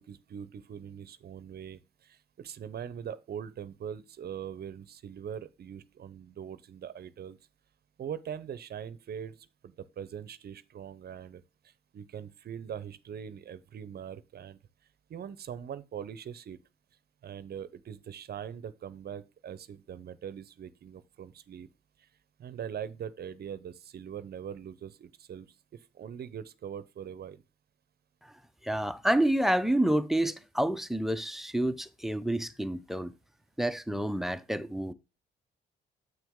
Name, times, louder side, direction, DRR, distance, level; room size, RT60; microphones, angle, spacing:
voice 1, 0.0-7.4 8.0-14.6 15.1-16.6 17.2-21.7 22.0-22.1 22.4-27.4, right 8 dB, 55° right, 0.7 m, -42 dB
voice 2, 28.6-33.1 33.6-34.9, right 1 dB, ahead, 0.5 m, -28 dB
7.4 x 6.2 x 3.6 m
cardioid pair, 90°, 20 cm